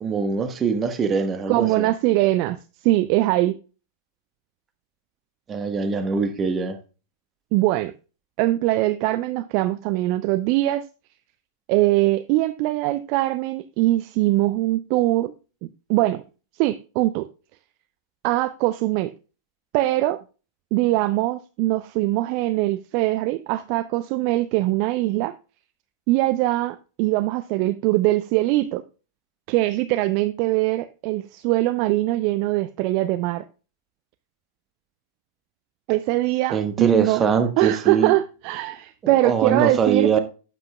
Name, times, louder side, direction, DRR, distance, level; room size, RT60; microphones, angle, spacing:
voice 1, 0.0-1.9 5.5-6.8 36.5-38.1 39.2-40.2, right 6 dB, 20° right, 1.3 m, -22 dB
voice 2, 1.5-3.5 7.5-7.9 8.4-10.8 11.7-15.3 15.9-16.2 16.6-17.3 18.2-19.1 19.7-20.2 20.7-25.3 26.1-28.8 29.5-33.4 35.9-37.2 37.6-40.2, right 17 dB, 45° right, 0.4 m, -22 dB
12.0 x 8.4 x 2.3 m
figure-of-eight pair, 95°, 0 cm